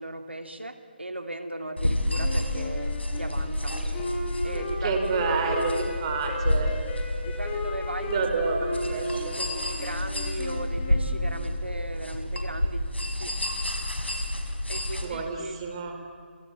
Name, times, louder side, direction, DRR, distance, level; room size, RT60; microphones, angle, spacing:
voice 1, 0.0-3.8 4.4-5.0 7.2-8.2 8.8-13.4 14.7-15.6, right 1 dB, 85° right, 7 dB, 2.8 m, -37 dB
sound 1, 1.8-15.1, left 1 dB, 90° left, 5.1 m, -30 dB
Wind instrument woodwind instrument, 2.2-11.6, left 2 dB, 25° left, 4.6 m, -36 dB
voice 2, 4.8-6.7 8.1-9.4 15.0-15.9, right 4 dB, 30° right, 4 dB, 4.5 m, -29 dB
28.0 x 26.5 x 7.5 m, 2.1 s
figure-of-eight pair, 150°, 6 cm